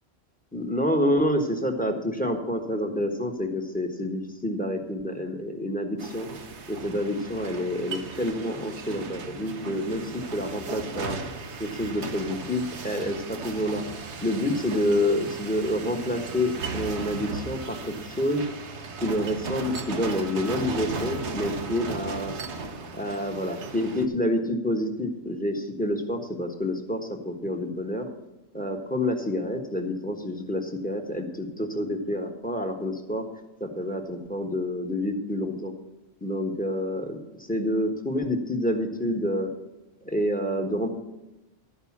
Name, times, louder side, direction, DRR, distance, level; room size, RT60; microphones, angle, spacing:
voice 1, 0.5-6.3 6.7-11.2 11.6-13.8 14.2-18.4 19.0-22.3 22.9-27.0 27.2-28.0 28.5-33.2 33.6-35.7 36.2-39.5 40.0-40.9, left 1 dB, 10° left, 3 dB, 1.3 m, -28 dB
sound 1, 6.0-24.1, right 4 dB, 80° right, 1.3 m, -36 dB
13.0 x 5.4 x 7.3 m, 0.99 s
omnidirectional pair, 1.1 m